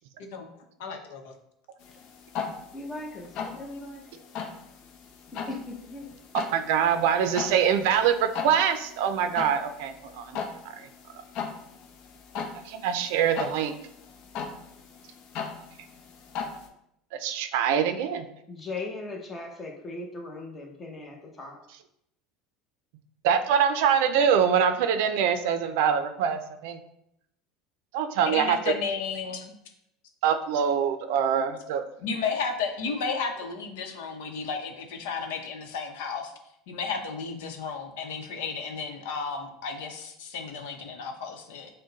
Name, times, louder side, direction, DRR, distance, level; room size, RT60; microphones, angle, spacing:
voice 1, 0.8-1.3 28.2-29.5 32.0-36.3 36.7-41.7, left 5 dB, 85° left, 4 dB, 0.8 m, -33 dB
sound 1, 1.8-16.7, left 6 dB, 55° left, 0.7 m, -39 dB
voice 2, 2.7-4.0 5.5-6.1 18.5-21.6, left 2 dB, 20° left, 1 dB, 0.9 m, -38 dB
voice 3, 6.5-10.4 10.7-10.9 12.7-13.7 17.1-18.3 23.2-26.8 27.9-28.7 30.2-31.9, right 8 dB, 75° right, 9 dB, 0.4 m, -24 dB
6.2 x 2.2 x 3.9 m, 0.77 s
supercardioid pair, 145°, 0 cm